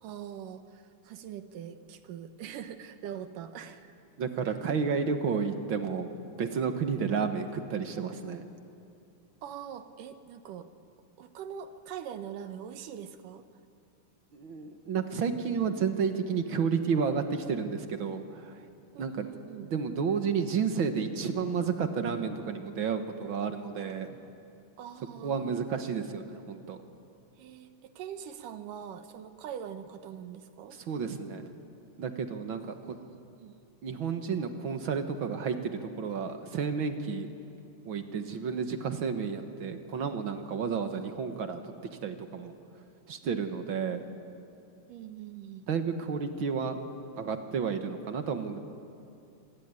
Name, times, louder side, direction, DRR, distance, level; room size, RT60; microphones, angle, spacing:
voice 1, 0.0-3.9 9.4-10.7 11.2-13.5 18.9-19.7 24.8-25.6 27.4-30.8 32.6-33.1 33.4-33.6 40.8-41.1 44.0-44.3 44.9-45.6, right 9 dB, 85° right, 9 dB, 2.8 m, -43 dB
voice 2, 4.2-6.1 6.4-8.4 14.3-18.6 19.0-19.3 19.7-24.2 25.2-26.8 30.9-31.5 32.0-32.6 32.9-33.0 33.8-37.3 37.8-42.5 43.1-44.0 45.7-46.8 47.2-48.6, right 6 dB, 50° right, 7 dB, 1.7 m, -31 dB
26.5 x 21.0 x 9.7 m, 2.6 s
omnidirectional pair, 3.7 m